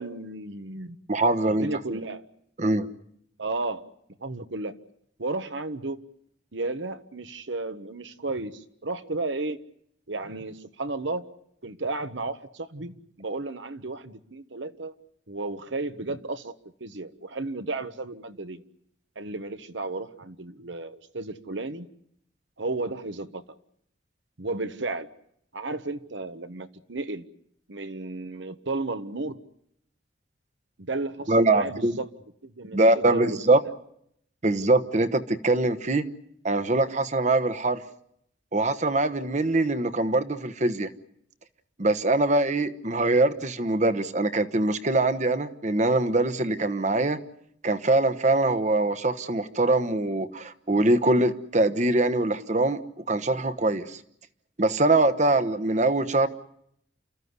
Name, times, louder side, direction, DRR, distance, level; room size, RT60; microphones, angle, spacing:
voice 1, 0.0-1.0 1.5-2.2 3.4-3.8 4.2-4.7 5.2-6.0 6.5-9.6 10.1-11.3 11.6-14.9 15.3-16.5 16.8-18.6 19.1-21.9 22.6-23.4 24.4-25.1 25.5-27.3 27.7-29.4 30.8-32.1 32.4-33.4, right 2 dB, 75° right, 10 dB, 1.3 m, -33 dB
voice 2, 1.1-1.7 2.6-2.9 31.3-32.0 32.7-33.6 34.4-36.1 36.4-37.8 38.5-40.9 41.8-47.2 47.6-54.0 54.6-56.3, right 2 dB, 40° right, 11 dB, 1.1 m, -23 dB
29.0 x 14.0 x 9.7 m, 0.73 s
head